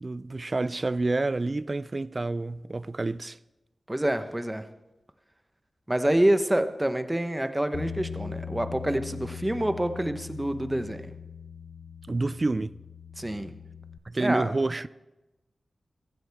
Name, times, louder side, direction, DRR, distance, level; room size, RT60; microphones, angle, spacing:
voice 1, 0.0-3.4 12.1-12.8 14.1-14.9, right 2 dB, 40° right, 0.4 m, -28 dB
voice 2, 3.9-4.6 5.9-11.1 13.2-13.5 14.2-14.5, right 1 dB, 15° right, 0.9 m, -27 dB
Bass guitar, 7.7-14.0, left 6 dB, 80° left, 0.6 m, -40 dB
16.0 x 15.0 x 3.5 m
wide cardioid pair, 75°, 0 cm